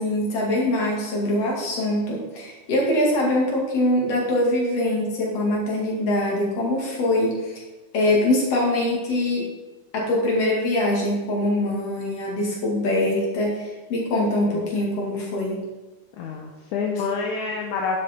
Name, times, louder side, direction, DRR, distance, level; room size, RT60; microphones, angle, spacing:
voice 1, 0.0-7.6 7.9-9.5 9.9-15.6, left 1 dB, 50° left, -3 dB, 3.2 m, -23 dB
voice 2, 16.2-18.0, left 4 dB, 75° left, -1 dB, 2.3 m, -27 dB
11.5 x 7.7 x 3.7 m, 1.1 s
omnidirectional pair, 3.6 m